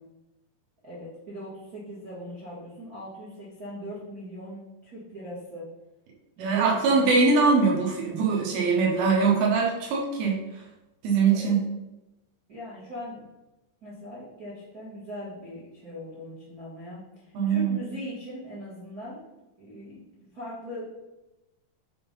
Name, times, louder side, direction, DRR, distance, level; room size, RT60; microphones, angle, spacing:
voice 1, 0.8-5.7 6.4-7.0 11.3-11.6 12.5-13.2 13.8-19.2 19.6-20.0 20.3-20.8, equal, 35° right, -9 dB, 1.4 m, -40 dB
voice 2, 6.4-10.6 11.0-11.7 17.3-17.8, right 4 dB, 70° right, -2 dB, 2.6 m, -22 dB
6.9 x 3.7 x 5.4 m, 0.99 s
omnidirectional pair, 5.2 m